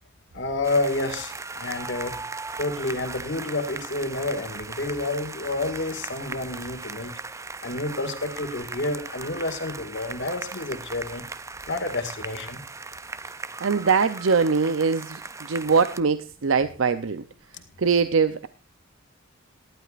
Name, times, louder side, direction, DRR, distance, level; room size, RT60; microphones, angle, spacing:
voice 1, 0.3-2.2 2.6-7.1 7.6-11.2 11.7-12.6 17.5-17.6, left 2 dB, 65° left, 7 dB, 2.1 m, -29 dB
sound 1, 0.6-16.0, right 3 dB, 15° right, 0.5 m, -38 dB
voice 2, 13.6-17.2 17.8-18.5, right 5 dB, 85° right, 12 dB, 0.6 m, -22 dB
18.5 x 11.5 x 2.5 m, 0.35 s
head